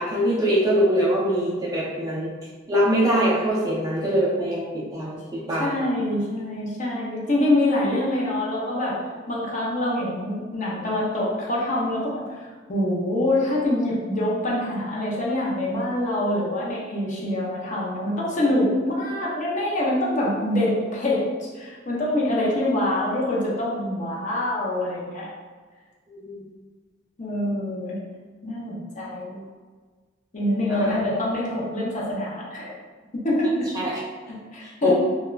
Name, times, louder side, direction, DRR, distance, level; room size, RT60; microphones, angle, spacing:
voice 1, 0.0-2.3 2.7-5.8 26.2-26.4 30.7-31.0 33.7-34.0 34.6-34.9, right 1 dB, 20° right, -8 dB, 0.4 m, -23 dB
voice 2, 5.5-9.0 9.3-25.3 27.2-28.0 28.4-29.4 30.3-32.8 33.2-33.7 34.3-34.9, left 1 dB, 40° left, -5 dB, 0.5 m, -25 dB
2.8 x 2.2 x 2.3 m, 1.5 s
head